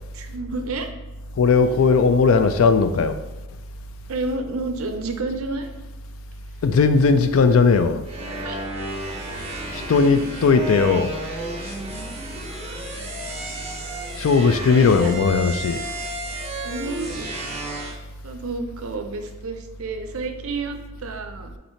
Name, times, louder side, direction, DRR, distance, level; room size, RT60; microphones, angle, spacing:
voice 1, 0.1-0.9 4.1-5.7 8.4-8.6 14.8-15.1 16.6-17.6 18.2-21.5, right 3 dB, 70° right, 6 dB, 0.5 m, -30 dB
voice 2, 1.4-3.2 6.6-8.0 9.7-11.1 14.2-15.8, left 4 dB, 65° left, 9 dB, 0.4 m, -17 dB
sound 1, 8.1-18.0, right 1 dB, 25° right, 0.7 m, -32 dB
3.9 x 2.7 x 4.4 m, 1.1 s
head